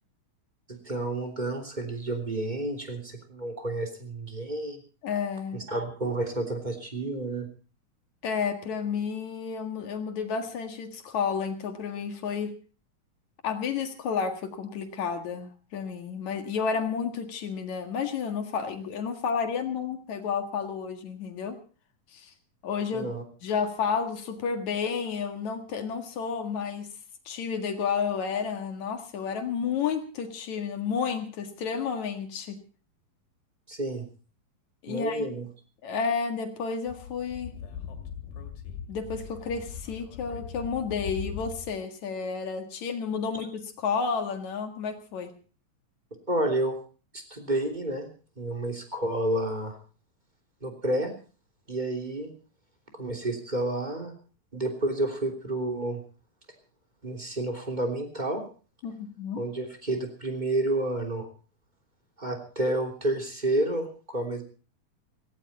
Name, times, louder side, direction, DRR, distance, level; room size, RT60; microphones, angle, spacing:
voice 1, 0.7-4.8 5.5-7.5 22.9-23.2 33.7-34.1 34.9-35.4 46.3-46.8 47.1-48.1 48.4-49.8 50.6-51.1 51.7-52.3 52.9-54.1 54.5-56.0 57.0-58.4 59.3-61.3 62.2-64.4, right 1 dB, 15° right, 3 dB, 2.9 m, -30 dB
voice 2, 5.0-5.6 8.2-12.5 13.4-21.6 22.1-22.3 22.6-23.1 23.4-26.9 27.3-32.6 34.8-35.3 35.8-37.6 38.9-45.3 58.8-59.4, left 6 dB, 60° left, 6 dB, 3.0 m, -31 dB
Speech / Wind, 36.9-41.8, left 8 dB, 90° left, 4.0 m, -40 dB
17.5 x 16.5 x 4.2 m, 0.37 s
omnidirectional pair, 4.0 m